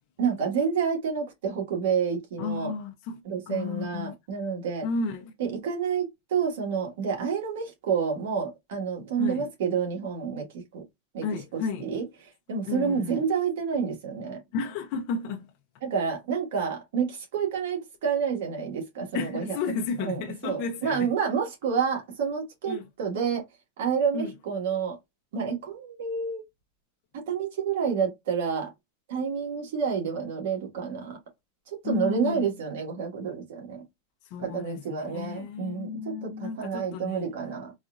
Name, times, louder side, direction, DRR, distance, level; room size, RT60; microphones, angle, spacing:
voice 1, 0.2-2.7 3.2-4.9 5.4-10.8 11.1-11.3 11.5-12.0 12.5-14.4 15.8-19.6 20.0-23.4 23.8-25.0 25.3-26.4 27.1-28.7 29.1-31.2 31.7-33.8 34.4-37.7, right 6 dB, 70° right, 1.6 m, -29 dB
voice 2, 2.4-4.1 4.8-5.3 9.2-9.5 11.2-11.9 12.7-13.2 14.5-15.5 19.1-21.1 22.7-22.8 24.1-24.3 31.8-32.6 34.3-37.3, left 5 dB, 45° left, 0.6 m, -33 dB
4.1 x 2.5 x 2.4 m
supercardioid pair, 155°, 0 cm